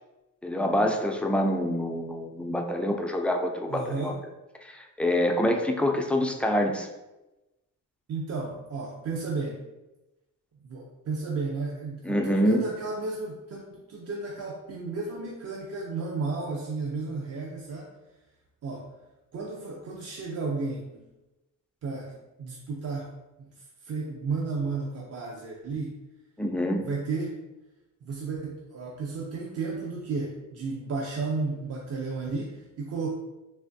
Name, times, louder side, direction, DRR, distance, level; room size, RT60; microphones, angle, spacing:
voice 1, 0.4-4.1 4.7-6.9 12.0-12.6 26.4-26.8, left 1 dB, 5° left, 3 dB, 0.3 m, -26 dB
voice 2, 3.7-4.2 8.1-9.6 10.6-17.9 18.6-18.9 19.3-21.1 21.8-22.1 22.4-23.1 23.4-23.5 23.8-26.0 26.8-27.4 28.0-33.1, right 4 dB, 45° right, -2 dB, 0.5 m, -33 dB
3.3 x 3.1 x 2.6 m, 1.0 s
cardioid pair, 95°, 34 cm